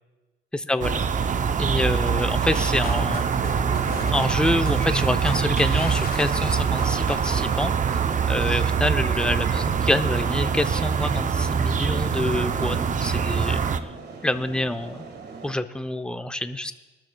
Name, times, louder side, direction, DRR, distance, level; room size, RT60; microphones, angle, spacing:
voice 1, 0.5-3.3 4.1-7.7 8.3-13.7 14.2-15.1 15.4-16.7, left 1 dB, 5° left, 9 dB, 0.6 m, -27 dB
sound 1, 0.8-13.8, right 6 dB, 40° right, 0.6 m, -24 dB
sound 2, 2.5-7.8, left 8 dB, 50° left, 0.6 m, -40 dB
sound 3, 2.5-15.5, right 4 dB, 55° right, 1.7 m, -41 dB
21.0 x 13.0 x 2.3 m, 1.2 s
cardioid pair, 90°, 20 cm